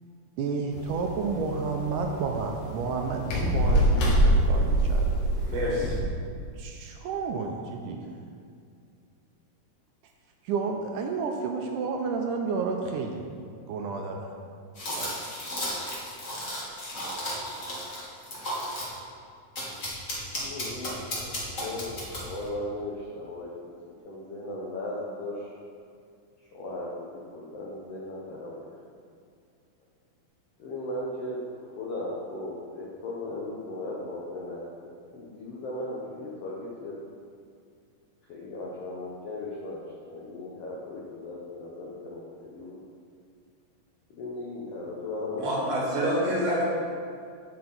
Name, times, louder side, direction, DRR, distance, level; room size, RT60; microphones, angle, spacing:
voice 1, 0.4-5.2 6.6-8.1 10.4-13.3 13.7-14.3 14.9-15.3 15.8-15.9, right 4 dB, 80° right, 2 dB, 2.0 m, -31 dB
sound 1, 0.7-6.0, right 1 dB, 85° left, 3.1 m, -25 dB
voice 2, 5.5-5.9 45.4-46.7, equal, 55° right, -3 dB, 2.2 m, -27 dB
sound 2, 14.8-19.0 19.6-22.5, equal, 35° left, 1.4 m, -34 dB
voice 3, 20.4-23.5 24.0-25.5 26.5-28.7 30.6-37.0 38.3-42.8 44.1-45.5 45.8-46.2, left 1 dB, 70° left, -5 dB, 1.5 m, -37 dB
8.9 x 7.5 x 4.0 m, 2.3 s
omnidirectional pair, 3.9 m